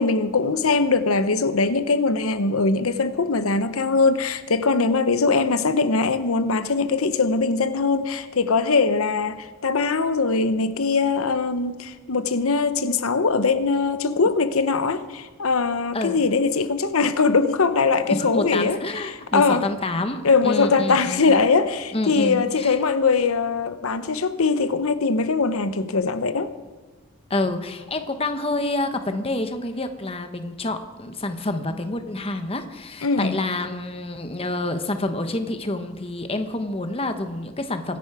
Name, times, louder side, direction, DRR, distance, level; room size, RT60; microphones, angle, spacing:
voice 1, 0.0-18.8 19.0-19.6 20.2-26.5 33.0-33.4, left 4 dB, 85° left, 0.8 m, -21 dB
voice 2, 18.1-21.4 21.9-22.8 27.3-38.0, left 2 dB, 25° left, 1.0 m, -28 dB
24.5 x 10.5 x 4.9 m
head